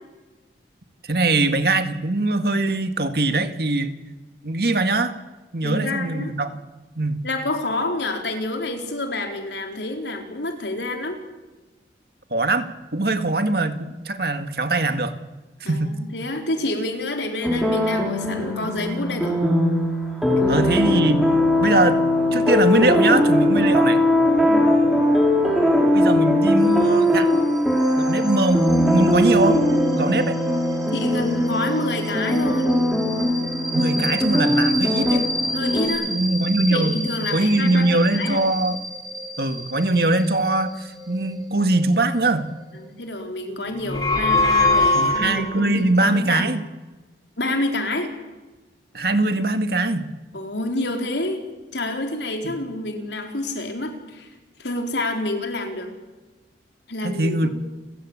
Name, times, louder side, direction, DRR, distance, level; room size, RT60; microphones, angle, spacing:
voice 1, 1.0-3.9 4.4-5.1 5.5-6.5 7.0-7.2 12.3-12.7 12.9-15.1 15.6-15.9 20.5-21.2 21.6-22.0 22.3-24.0 25.9-27.5 28.0-29.6 29.9-30.4 33.7-35.3 36.1-37.0 37.3-38.8 39.4-42.5 44.9-46.6 48.9-50.1 52.4-52.5 57.0-57.5, right 2 dB, 60° right, 8 dB, 1.9 m, -21 dB
voice 2, 5.6-6.3 7.2-11.2 15.6-19.4 20.3-20.9 24.5-24.7 30.9-32.7 35.5-36.1 36.7-38.4 42.7-46.5 47.4-48.1 50.3-51.4 51.7-54.3 54.6-55.9 56.9-57.5, left 2 dB, 80° left, 4 dB, 4.2 m, -28 dB
sound 1, 17.4-35.9, left 1 dB, ahead, 5.5 m, -20 dB
sound 2, 26.6-42.9, equal, 20° right, 2.2 m, -32 dB
sound 3, 43.7-45.7, left 2 dB, 20° left, 4.8 m, -20 dB
30.0 x 15.5 x 8.8 m, 1.2 s
head